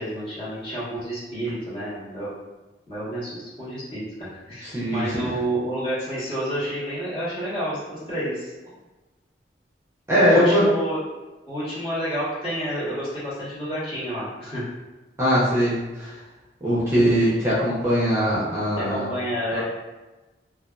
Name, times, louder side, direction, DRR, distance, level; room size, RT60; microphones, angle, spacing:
voice 1, 0.0-2.3 2.9-8.5 10.2-11.0 11.5-14.6 18.9-19.6, equal, 30° left, -11 dB, 1.2 m, -29 dB
voice 2, 4.6-5.2 10.1-10.6 15.2-16.1 16.6-19.1 19.5-19.6, equal, 15° right, -9 dB, 0.6 m, -21 dB
2.6 x 2.3 x 2.2 m, 1.1 s
head